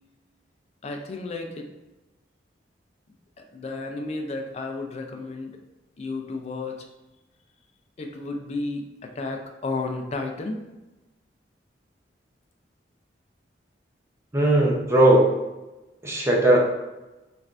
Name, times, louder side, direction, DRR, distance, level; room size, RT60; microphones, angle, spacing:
voice 1, 0.8-1.7 3.4-5.6 6.0-6.9 8.0-10.6, left 3 dB, 35° left, 3 dB, 0.4 m, -32 dB
voice 2, 14.3-15.3 16.0-16.6, right 1 dB, 15° right, -2 dB, 0.5 m, -18 dB
3.2 x 2.5 x 2.4 m, 1.0 s
head